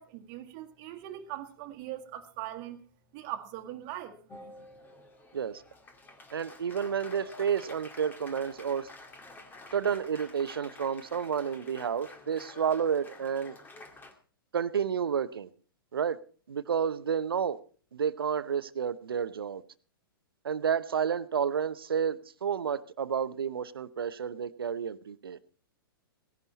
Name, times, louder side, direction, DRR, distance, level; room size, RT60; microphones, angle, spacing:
voice 1, 0.0-2.8 3.1-4.2, right 13 dB, 40° right, 1.8 m, -40 dB
Applause, 4.3-14.1, left 2 dB, 15° left, 2.1 m, -50 dB
voice 2, 6.3-8.9 9.7-13.6 14.5-15.5 15.9-16.2 16.5-17.6 17.9-19.6 20.4-25.4, right 7 dB, 75° right, 0.9 m, -30 dB
17.0 x 11.0 x 4.1 m
figure-of-eight pair, 110°, 12 cm